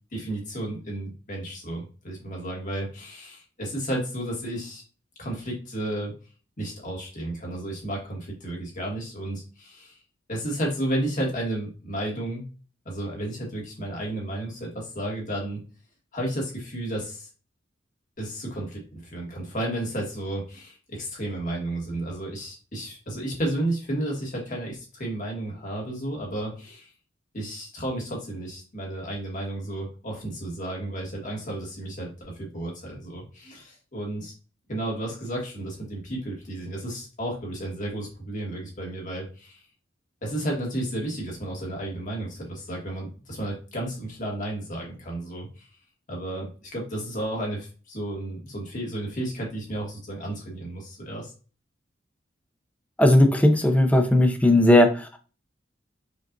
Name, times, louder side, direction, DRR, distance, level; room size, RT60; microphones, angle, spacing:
voice 1, 0.1-4.8 5.2-6.1 6.6-10.0 10.3-12.5 12.8-15.6 16.1-17.3 18.2-26.9 27.3-34.3 34.7-39.6 40.2-45.7 46.1-51.3, right 1 dB, 45° left, -1 dB, 1.4 m, -32 dB
voice 2, 53.0-55.2, left 1 dB, 10° left, 5 dB, 0.5 m, -17 dB
5.1 x 2.4 x 2.5 m, 0.36 s
head